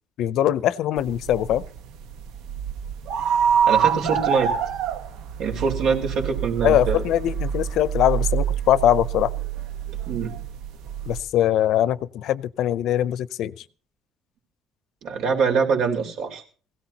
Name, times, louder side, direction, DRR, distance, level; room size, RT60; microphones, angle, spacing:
voice 1, 0.2-1.7 6.6-9.3 11.1-13.5, left 12 dB, 65° left, 17 dB, 0.6 m, -22 dB
sound 1, 1.0-11.2, right 8 dB, 90° right, 1.3 m, -26 dB
voice 2, 3.7-4.5 5.4-7.0 10.1-10.4 15.0-16.4, right 5 dB, 70° right, 1 dB, 4.4 m, -24 dB
21.0 x 17.0 x 2.9 m, 0.40 s
cardioid pair, 155°, 0 cm